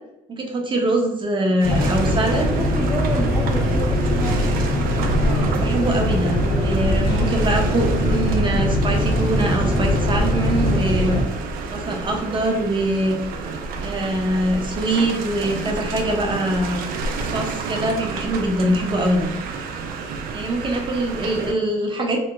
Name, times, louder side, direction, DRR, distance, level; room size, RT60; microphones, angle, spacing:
voice 1, 0.3-2.4 5.2-11.2 11.7-13.2 13.8-16.8 17.3-19.3 20.3-22.2, right 1 dB, 30° right, 1 dB, 0.7 m, -23 dB
voice 2, 1.4-4.6, equal, 5° left, -1 dB, 0.4 m, -30 dB
sound 1, 1.6-11.2, equal, 80° left, 0.9 m, -21 dB
sound 2, 1.6-21.5, right 3 dB, 70° right, 0.4 m, -30 dB
2.9 x 2.0 x 3.5 m, 0.87 s
cardioid pair, 100°, 16 cm